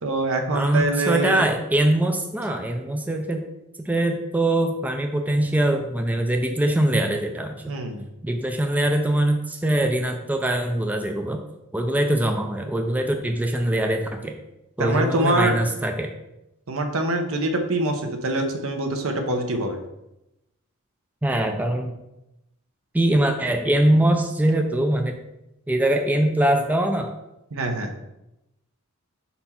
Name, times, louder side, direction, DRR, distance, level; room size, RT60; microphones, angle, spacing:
voice 1, 0.0-1.4 7.7-8.1 14.8-15.6 16.7-19.8 27.5-27.9, right 2 dB, 70° right, 5 dB, 0.9 m, -24 dB
voice 2, 0.5-3.5 3.8-7.7 8.2-11.4 11.7-14.4 14.8-16.1 21.2-21.9 22.9-25.2 25.7-27.1, right 1 dB, 5° right, 4 dB, 0.4 m, -22 dB
4.4 x 4.3 x 5.6 m, 0.90 s
head